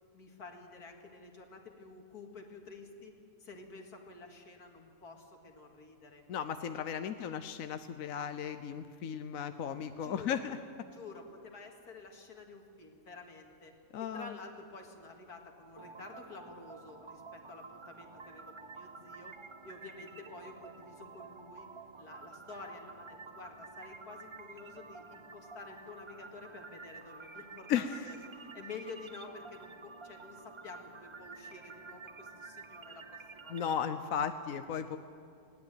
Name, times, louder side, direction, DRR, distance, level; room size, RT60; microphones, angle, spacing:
voice 1, 0.1-3.1 3.4-6.2 6.6-7.6 10.0-10.4 10.9-13.7 14.0-19.4 19.6-21.7 22.0-33.8, left 3 dB, 80° left, 3 dB, 2.6 m, -50 dB
voice 2, 6.3-10.6 13.9-14.3 27.7-28.0 33.5-35.0, left 8 dB, 65° left, 10 dB, 1.1 m, -35 dB
sound 1, 15.8-33.8, right 4 dB, 50° right, 0.3 m, -50 dB
20.0 x 17.5 x 9.1 m, 2.4 s
omnidirectional pair, 1.6 m